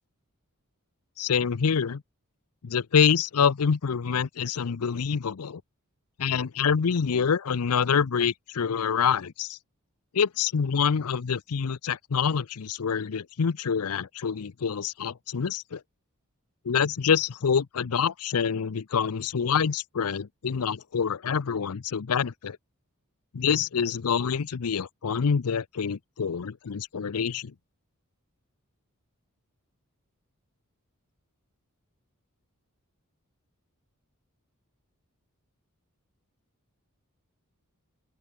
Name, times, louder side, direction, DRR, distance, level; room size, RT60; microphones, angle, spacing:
voice 1, 1.2-2.0 2.6-5.6 6.2-9.6 10.1-15.8 16.6-22.6 23.3-27.5, left 6 dB, 80° left, 0.6 m, -26 dB
open air
head